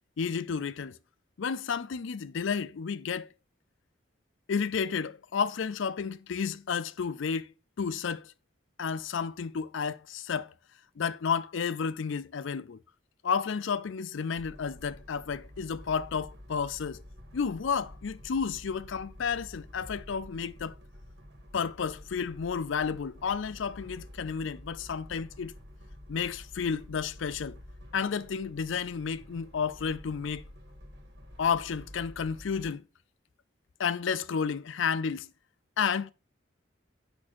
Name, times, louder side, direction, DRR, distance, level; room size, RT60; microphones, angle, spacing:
voice 1, 0.2-1.0 1.4-3.3 4.5-7.5 7.8-8.3 8.8-10.5 11.0-12.8 13.2-17.0 17.3-20.7 21.5-25.5 26.1-27.6 27.9-30.4 31.4-32.8 33.8-35.3 35.8-36.1, left 6 dB, 80° left, 0.5 m, -31 dB
sound 1, 14.3-32.7, left 1 dB, 60° right, 2.4 m, -49 dB
8.5 x 6.1 x 4.3 m
head